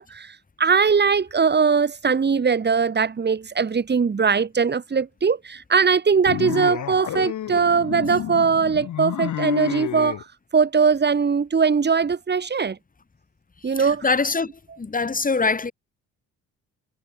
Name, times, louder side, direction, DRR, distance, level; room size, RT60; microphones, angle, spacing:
voice 1, 0.0-10.2 10.5-12.8 13.6-14.0, right 5 dB, 35° right, 3.3 m, -20 dB
sound 1, 6.3-10.2, left 11 dB, 70° left, 7.1 m, -30 dB
voice 2, 13.8-14.5 14.8-15.7, left 4 dB, 25° left, 4.9 m, -23 dB
cardioid pair, 90°, 30 cm